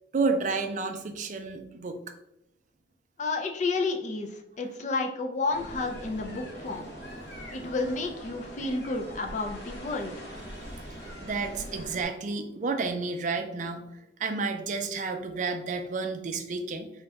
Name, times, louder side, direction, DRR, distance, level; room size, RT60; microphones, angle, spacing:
voice 1, 0.1-2.0 7.0-7.5 10.4-13.9 14.2-16.9, right 4 dB, 40° right, 6 dB, 0.4 m, -31 dB
voice 2, 3.2-4.3 4.6-6.9 7.5-10.1, left 3 dB, 40° left, 3 dB, 0.4 m, -31 dB
sound 1, 5.5-12.0, equal, 55° left, 0.9 m, -42 dB
3.9 x 2.2 x 3.3 m, 0.82 s
head